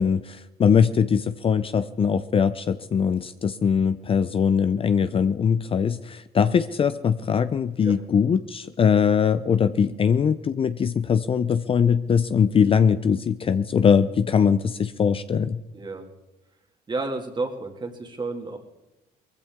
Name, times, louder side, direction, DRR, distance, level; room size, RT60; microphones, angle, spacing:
voice 1, 0.0-15.6, left 7 dB, 35° left, 12 dB, 0.5 m, -21 dB
voice 2, 15.7-16.1 16.9-18.6, right 3 dB, 25° right, 4 dB, 2.3 m, -31 dB
20.5 x 15.5 x 3.6 m, 1.0 s
cardioid pair, 110°, 17 cm